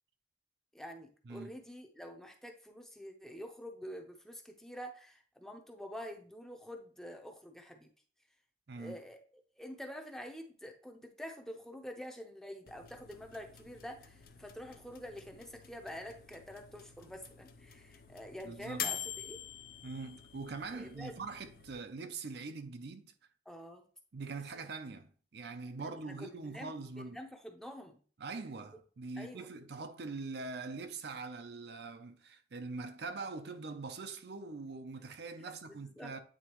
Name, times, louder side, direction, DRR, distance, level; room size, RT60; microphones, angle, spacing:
voice 1, 0.7-7.9 8.8-9.2 9.6-19.4 20.7-21.1 23.5-23.8 25.9-28.0 29.2-29.5 35.4-36.1, equal, 5° left, 0.7 m, -47 dB
sound 1, 12.7-21.7, left 9 dB, 55° left, 0.6 m, -46 dB
voice 2, 18.4-18.9 19.8-23.1 24.1-27.2 28.2-36.2, right 3 dB, 60° right, 0.5 m, -43 dB
8.7 x 3.8 x 3.0 m
head